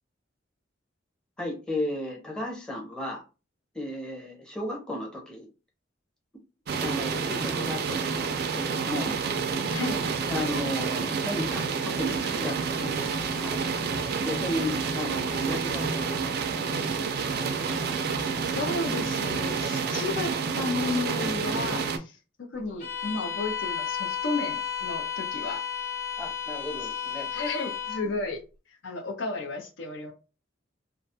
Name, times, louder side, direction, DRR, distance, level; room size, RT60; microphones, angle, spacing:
voice 1, 1.4-3.2 3.7-5.5 6.8-9.1 10.3-13.5 14.2-17.1 26.2-27.3, left 1 dB, 5° left, -2 dB, 0.6 m, -35 dB
sound 1, 6.7-22.0, right 5 dB, 55° right, 0.4 m, -29 dB
voice 2, 18.5-25.7 26.8-26.9 27.3-28.4 28.8-30.1, left 3 dB, 70° left, 3 dB, 0.5 m, -33 dB
Bowed string instrument, 22.8-28.1, left 8 dB, 45° left, 0.9 m, -33 dB
2.4 x 2.3 x 2.7 m, 0.32 s
head